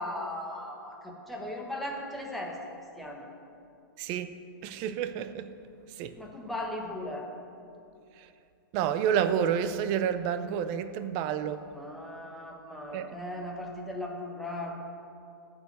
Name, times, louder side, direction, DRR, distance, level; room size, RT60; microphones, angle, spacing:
voice 1, 0.0-2.6 3.0-3.2 6.2-7.3 11.6-14.8, left 1 dB, ahead, -1 dB, 1.1 m, -37 dB
voice 2, 4.0-4.3 4.6-5.5 6.0-6.1 8.7-11.6 12.9-13.1, right 8 dB, 30° right, 11 dB, 0.5 m, -29 dB
13.5 x 4.7 x 8.1 m, 2.6 s
hypercardioid pair, 150°, 12 cm